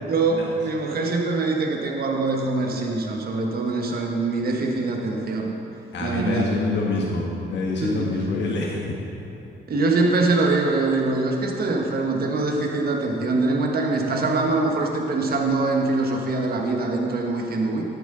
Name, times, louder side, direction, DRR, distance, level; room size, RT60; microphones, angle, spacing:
voice 1, 0.1-5.5 6.0-6.6 7.8-8.3 9.7-17.8, right 3 dB, 50° right, 1 dB, 1.3 m, -23 dB
voice 2, 5.9-8.8, left 3 dB, 65° left, -3 dB, 1.4 m, -26 dB
11.5 x 9.4 x 3.8 m, 2.8 s
cardioid pair, 90°, 20 cm